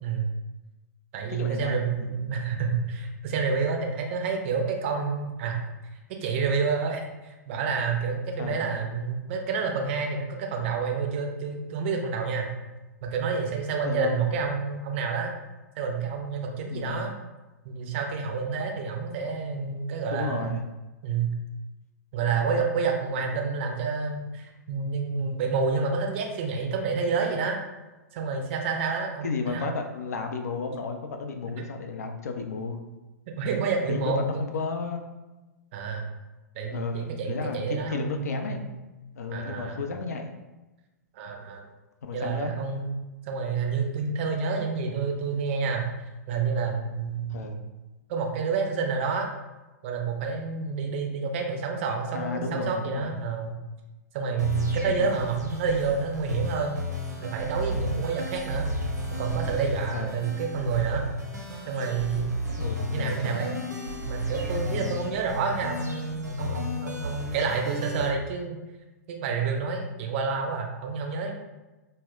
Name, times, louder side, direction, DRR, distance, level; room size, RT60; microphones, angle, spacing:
voice 1, 0.0-0.3 1.1-5.6 6.2-12.5 13.0-15.3 15.8-17.1 17.6-20.5 21.0-21.3 22.1-27.6 28.1-29.7 33.4-34.4 35.7-36.1 36.6-38.7 39.3-39.8 41.1-41.7 42.1-42.9 43.3-45.9 46.3-47.5 48.1-49.3 49.8-53.5 54.1-56.8 57.2-58.7 59.1-61.0 61.7-62.3 62.9-63.6 64.1-68.6 69.1-71.3, right 5 dB, 45° right, 2 dB, 0.5 m, -29 dB
voice 2, 1.3-2.1 8.4-8.6 13.8-14.2 16.7-17.1 20.1-20.7 29.2-32.8 33.9-35.0 36.7-38.7 39.1-40.3 42.1-42.5 47.3-47.6 52.1-53.2 55.0-55.2 59.9-60.2 62.5-63.5, left 4 dB, 65° left, 5 dB, 0.4 m, -33 dB
sound 1, 54.4-68.1, left 1 dB, 85° right, 0.6 m, -34 dB
2.1 x 2.0 x 3.6 m, 1.1 s
figure-of-eight pair, 110°, 9 cm